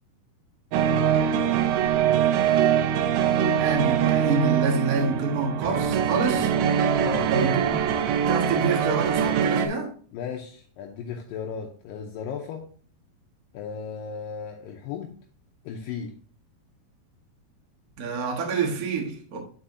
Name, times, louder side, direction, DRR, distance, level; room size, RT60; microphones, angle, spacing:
sound 1, 0.7-9.7, right 8 dB, 85° right, 2.5 m, -23 dB
voice 1, 3.6-6.5 7.3-7.9 8.3-9.9 18.0-19.4, right 4 dB, 60° right, 0.9 m, -27 dB
voice 2, 7.0-7.4 10.1-12.7 13.5-15.1 15.6-16.1, left 6 dB, 80° left, 2.3 m, -35 dB
7.9 x 6.2 x 2.7 m
omnidirectional pair, 4.2 m